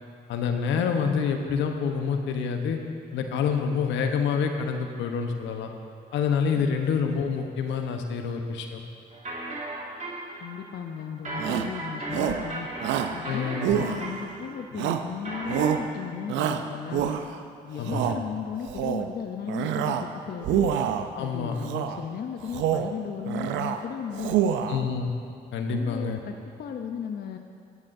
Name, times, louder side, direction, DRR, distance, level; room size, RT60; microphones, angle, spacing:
voice 1, 0.3-2.8 3.1-5.7 6.1-8.8 13.2-13.7 17.8-18.1 21.1-21.6 24.7-25.1 25.5-26.2, left 6 dB, 80° left, 4 dB, 1.0 m, -27 dB
voice 2, 6.5-6.9 10.4-12.7 13.1-17.2 17.6-20.7 21.2-24.7 25.7-27.4, left 7 dB, 55° left, 4 dB, 0.7 m, -36 dB
sound 1, 9.1-15.8, right 2 dB, 40° right, 2.1 m, -36 dB
Shout, 11.4-11.7 12.1-12.5 12.8-13.2 13.6-14.3 14.8-15.1 15.5-15.9 16.3-17.4 17.8-18.2 18.6-19.1 19.5-20.1 20.4-21.1 21.6-22.0 22.4-22.9 23.3-23.8 24.1-24.8, right 9 dB, 80° right, 0.6 m, -27 dB
17.0 x 12.0 x 2.7 m, 2.4 s
supercardioid pair, 50°, 19 cm